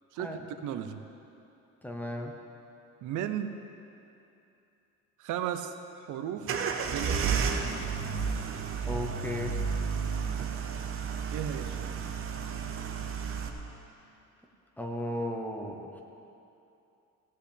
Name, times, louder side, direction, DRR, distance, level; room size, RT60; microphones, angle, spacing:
voice 1, 0.1-1.0 3.0-3.6 5.2-6.6 6.9-7.6 11.3-11.9, right 10 dB, 85° right, 8 dB, 0.8 m, -35 dB
voice 2, 1.8-2.3 8.9-9.6 14.8-16.0, left 1 dB, 5° left, 2 dB, 0.8 m, -35 dB
sound 1, 6.4-13.5, right 6 dB, 45° right, 0.9 m, -32 dB
16.0 x 5.6 x 8.4 m, 2.8 s
cardioid pair, 180°, 30 cm